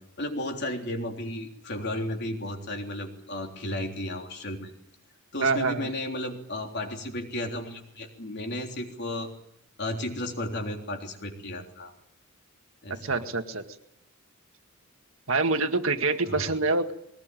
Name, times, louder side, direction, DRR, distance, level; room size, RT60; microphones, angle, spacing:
voice 1, 0.2-4.7 5.3-9.3 9.8-11.9 12.8-13.2 16.3-16.6, left 1 dB, 55° left, 3 dB, 3.5 m, -34 dB
voice 2, 5.4-5.9 12.9-13.6 15.3-16.9, right 3 dB, 65° right, 6 dB, 2.0 m, -26 dB
21.5 x 19.0 x 9.3 m, 0.80 s
head